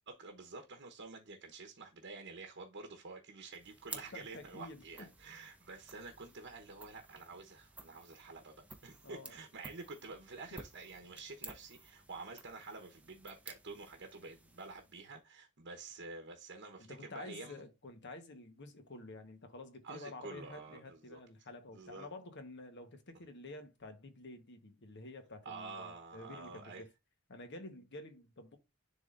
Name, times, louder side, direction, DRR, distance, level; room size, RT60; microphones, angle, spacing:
voice 1, 0.1-8.5 8.8-17.7 19.8-21.2 21.7-22.1 25.4-26.8, right 3 dB, 55° right, 1.0 m, -49 dB
sound 1, 3.5-15.2, right 2 dB, 5° right, 0.7 m, -54 dB
voice 2, 3.9-4.8 9.0-9.4 16.8-26.9 27.3-28.6, left 2 dB, 55° left, 1.2 m, -50 dB
10.5 x 3.6 x 2.5 m
head